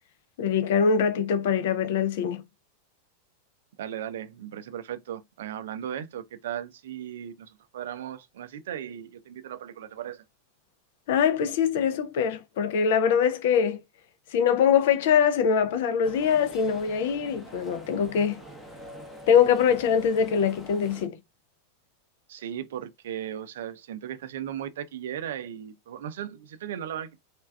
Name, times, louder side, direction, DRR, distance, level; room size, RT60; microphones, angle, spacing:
voice 1, 0.4-2.4 11.1-13.8 14.3-18.4 19.3-21.2, left 7 dB, 55° left, 0.5 m, -23 dB
voice 2, 3.8-10.3 22.3-27.2, right 10 dB, 60° right, 0.4 m, -37 dB
sound 1, 16.0-21.1, right 1 dB, 5° left, 0.8 m, -45 dB
3.2 x 2.4 x 2.2 m
figure-of-eight pair, 90°, 0 cm